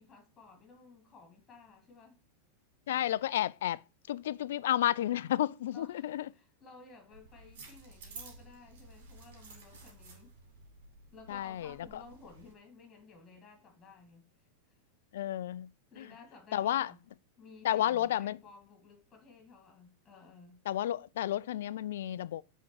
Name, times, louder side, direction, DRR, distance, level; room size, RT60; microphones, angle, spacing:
voice 1, 0.0-2.2 5.7-10.3 11.1-14.3 15.9-17.0 17.4-20.6, left 4 dB, 20° left, 2.3 m, -55 dB
voice 2, 2.9-3.8 4.1-6.2 11.3-11.7 15.1-15.7 16.0-16.1 16.5-16.9 17.6-18.4 20.7-22.4, left 12 dB, 60° left, 0.3 m, -31 dB
sound 1, 7.1-12.5, right 3 dB, 50° right, 2.6 m, -53 dB
9.5 x 3.7 x 4.4 m
figure-of-eight pair, 90°, 0 cm